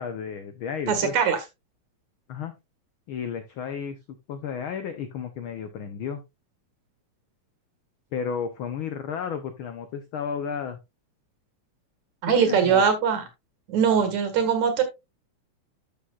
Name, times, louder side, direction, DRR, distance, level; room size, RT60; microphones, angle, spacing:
voice 1, 0.0-1.1 2.3-2.5 3.1-4.0 4.3-6.2 8.1-10.8 12.3-12.8, left 7 dB, 80° left, 9 dB, 1.1 m, -32 dB
voice 2, 0.9-1.4 12.2-13.2 13.7-14.8, right 7 dB, 70° right, 8 dB, 3.2 m, -21 dB
12.5 x 6.9 x 2.4 m, 0.22 s
omnidirectional pair, 3.4 m